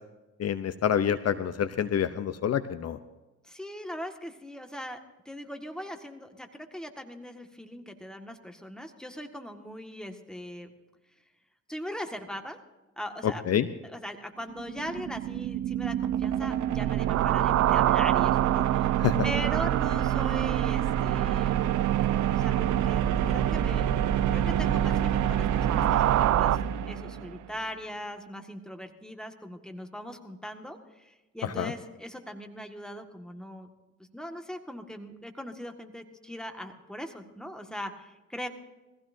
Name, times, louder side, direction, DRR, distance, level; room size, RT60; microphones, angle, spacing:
voice 1, 0.4-3.0 13.2-13.7 19.0-19.2 31.4-31.7, left 9 dB, 55° left, 12 dB, 0.8 m, -27 dB
voice 2, 3.4-5.0 5.3-10.7 11.7-12.6 13.0-13.4 13.8-18.9 19.2-21.9 22.4-24.0 24.3-26.6 26.9-33.7 34.0-38.5, equal, ahead, 5 dB, 1.8 m, -40 dB
sound 1, 14.4-27.6, right 10 dB, 80° right, 0.9 m, -28 dB
sound 2, 16.7-26.6, right 13 dB, 60° right, 0.5 m, -27 dB
21.0 x 15.5 x 2.7 m, 1.1 s
cardioid pair, 90°, 30 cm